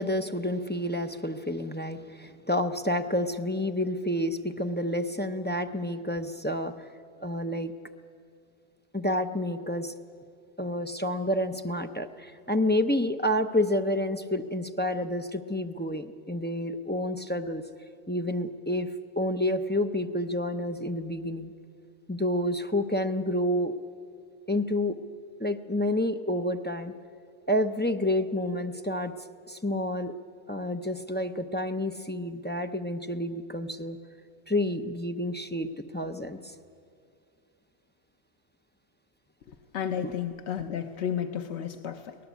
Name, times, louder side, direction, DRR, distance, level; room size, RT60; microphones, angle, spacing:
voice 1, 0.0-6.7 7.2-7.7 8.9-9.9 10.6-17.6 18.1-18.9 19.2-21.5 22.1-23.7 24.5-25.0 25.4-26.9 27.5-29.1 29.5-30.1 30.5-34.0 34.5-36.5 40.0-40.1, left 1 dB, 10° left, 6 dB, 0.5 m, -29 dB
voice 2, 39.5-42.2, left 8 dB, 80° left, 7 dB, 1.1 m, -32 dB
23.5 x 18.5 x 8.3 m, 2.3 s
omnidirectional pair, 1.1 m